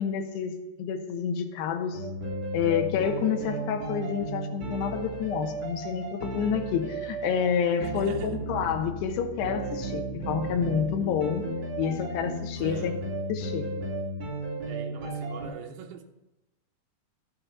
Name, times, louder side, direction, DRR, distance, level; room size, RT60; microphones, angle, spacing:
voice 1, 0.0-2.0 2.5-11.4 11.8-13.0 13.3-13.7, left 7 dB, 75° left, 3.1 m, -29 dB
sound 1, 1.9-15.5, right 2 dB, 40° right, 4.3 m, -34 dB
voice 2, 7.8-8.4 12.6-13.0 14.6-16.0, right 8 dB, 90° right, 3.1 m, -43 dB
12.5 x 7.6 x 5.7 m
omnidirectional pair, 5.0 m